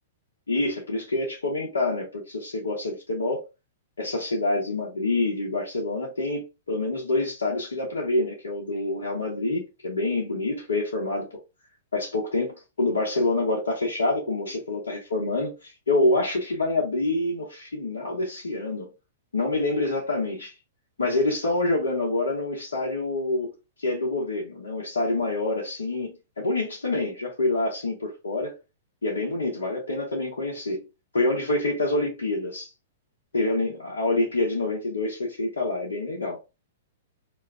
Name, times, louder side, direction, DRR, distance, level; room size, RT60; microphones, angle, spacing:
voice 1, 0.5-3.4 4.0-11.3 11.9-18.9 19.3-20.5 21.0-23.5 23.8-28.5 29.0-30.8 31.1-32.7 33.3-36.4, left 2 dB, 85° left, 1.0 m, -27 dB
2.8 x 2.4 x 3.5 m
hypercardioid pair, 115°, 0 cm